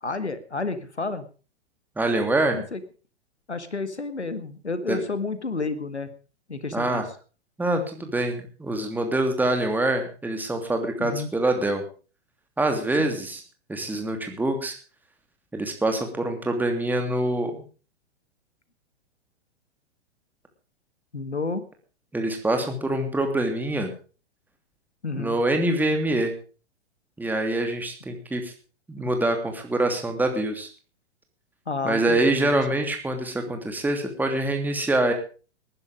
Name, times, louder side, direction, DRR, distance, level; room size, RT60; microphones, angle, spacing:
voice 1, 0.0-1.2 2.5-2.8 3.5-6.1 6.5-7.0 11.0-11.3 13.0-13.1 21.1-21.6 25.0-25.4 31.7-32.6, left 3 dB, 85° left, 13 dB, 1.9 m, -30 dB
voice 2, 2.0-2.6 4.9-5.0 6.7-7.0 7.6-11.8 12.6-13.4 13.7-14.7 15.5-17.6 22.1-23.9 25.1-26.3 27.2-28.5 28.9-30.7 31.8-35.1, right 2 dB, 5° right, 4 dB, 2.9 m, -25 dB
19.5 x 10.5 x 5.1 m, 0.37 s
figure-of-eight pair, 105°, 33 cm